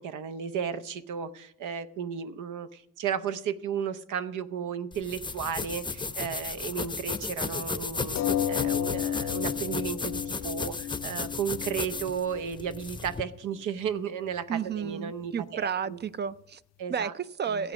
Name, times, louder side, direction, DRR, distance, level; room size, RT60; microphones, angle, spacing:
voice 1, 0.0-8.2 8.5-16.0 16.8-17.1 17.4-17.6, right 7 dB, 80° right, 12 dB, 0.8 m, -34 dB
sound 1, 4.9-13.2, left 4 dB, 15° left, 0.6 m, -34 dB
sound 2, 8.1-13.2 13.9-14.0 14.3-14.4, left 11 dB, 60° left, 0.6 m, -33 dB
voice 2, 14.5-16.6 16.9-17.7, right 7 dB, 35° right, 15 dB, 0.4 m, -32 dB
15.5 x 8.3 x 6.2 m, 0.77 s
cardioid pair, 105°, 30 cm